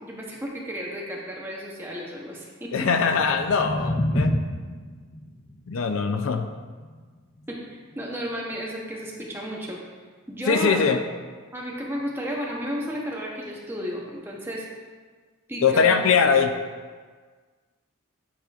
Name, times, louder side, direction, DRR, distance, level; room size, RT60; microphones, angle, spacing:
voice 1, 0.0-2.7 7.5-9.8 10.3-10.9 11.5-14.7 15.5-16.0, equal, 10° right, -3 dB, 0.8 m, -33 dB
voice 2, 2.7-4.3 5.7-6.5 10.5-11.0 15.6-16.5, left 5 dB, 70° left, 7 dB, 0.4 m, -21 dB
sound 1, 3.0-9.1, left 1 dB, 30° left, 0.7 m, -31 dB
9.1 x 4.9 x 2.4 m, 1.5 s
head